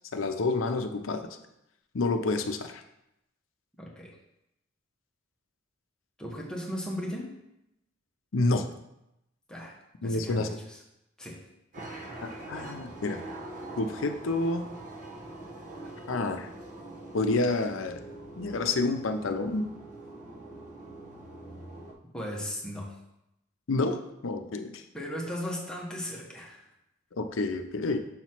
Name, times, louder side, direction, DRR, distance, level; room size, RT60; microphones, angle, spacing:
voice 1, 0.1-1.4 1.9-2.8 8.3-8.6 10.0-10.5 12.2-13.2 13.8-14.6 16.1-16.5 17.1-18.0 18.4-19.7 23.7-24.8 27.2-28.0, left 3 dB, 80° left, 7 dB, 0.6 m, -29 dB
voice 2, 3.8-4.2 6.2-7.4 9.5-9.8 10.0-10.8 11.2-11.5 11.8-12.4 22.1-23.0 24.9-26.7, equal, 5° left, -3 dB, 1.1 m, -37 dB
sound 1, 11.7-21.9, right 2 dB, 40° right, 1.1 m, -43 dB
6.4 x 3.0 x 5.8 m, 0.86 s
head